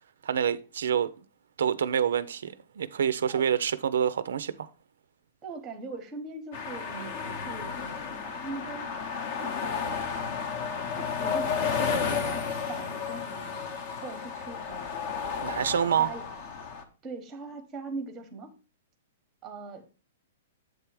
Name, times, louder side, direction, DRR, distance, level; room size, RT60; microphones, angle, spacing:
voice 1, 0.2-1.1 1.6-4.7 15.4-16.1, right 8 dB, 75° right, 0.4 m, -27 dB
voice 2, 5.4-9.0 9.3-10.0 10.9-15.3 15.8-16.2 17.0-18.5 19.4-19.9, right 3 dB, 10° right, 0.8 m, -41 dB
sound 1, 6.5-16.8, left 6 dB, 35° left, 0.7 m, -32 dB
7.9 x 3.4 x 4.6 m
hypercardioid pair, 180°, 0 cm